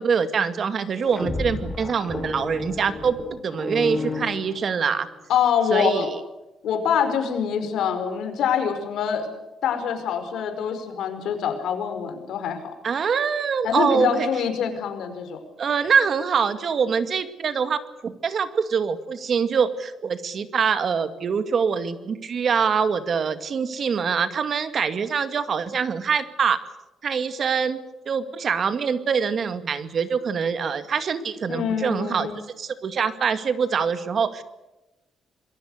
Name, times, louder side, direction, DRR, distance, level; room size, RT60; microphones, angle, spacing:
voice 1, 0.0-3.2 3.4-5.1 5.7-6.2 12.8-14.3 15.6-26.6 27.0-27.8 28.1-32.3 32.6-34.4, right 6 dB, 50° right, 11 dB, 2.1 m, -24 dB
sound 1, 0.9-5.1, left 3 dB, 15° left, 3.2 m, -32 dB
voice 2, 5.3-6.1 6.6-9.3 9.6-12.7 13.6-15.4 31.5-32.3, left 7 dB, 75° left, 7 dB, 5.2 m, -25 dB
27.0 x 22.5 x 6.7 m, 1.0 s
cardioid pair, 110°, 0 cm